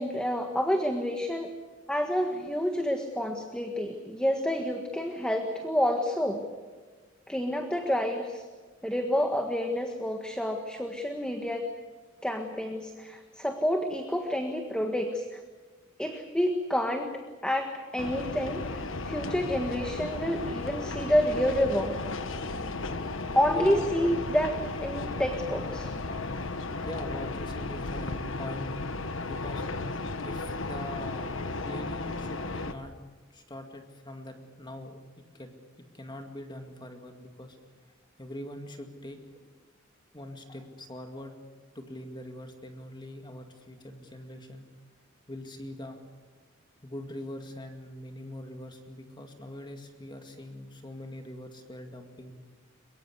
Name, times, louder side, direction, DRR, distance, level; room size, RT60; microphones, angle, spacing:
voice 1, 0.0-1.5 1.9-6.4 7.3-8.4 8.8-11.7 12.2-15.4 16.0-21.9 23.3-25.9, equal, 5° left, 4 dB, 1.6 m, -29 dB
sound 1, 18.0-32.7, left 3 dB, 75° left, 1.4 m, -34 dB
voice 2, 23.5-23.9 26.8-29.7 30.2-31.3 31.6-33.0 33.3-37.6 38.2-39.5 40.1-41.4 41.7-44.7 45.3-46.0 46.8-52.3, left 1 dB, 25° left, 5 dB, 2.1 m, -42 dB
23.5 x 22.5 x 8.2 m, 1.4 s
head